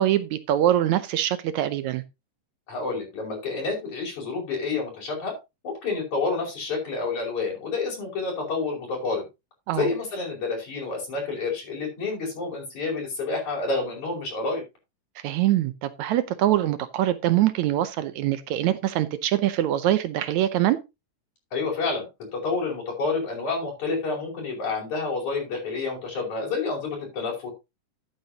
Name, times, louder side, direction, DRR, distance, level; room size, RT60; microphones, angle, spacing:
voice 1, 0.0-2.0 9.7-9.9 15.2-20.8, right 13 dB, 75° right, 1.8 m, -23 dB
voice 2, 2.7-5.4 5.6-9.3 9.7-14.6 21.5-22.0 22.3-27.5, left 4 dB, 60° left, 6.4 m, -29 dB
13.0 x 8.6 x 2.8 m
omnidirectional pair, 3.8 m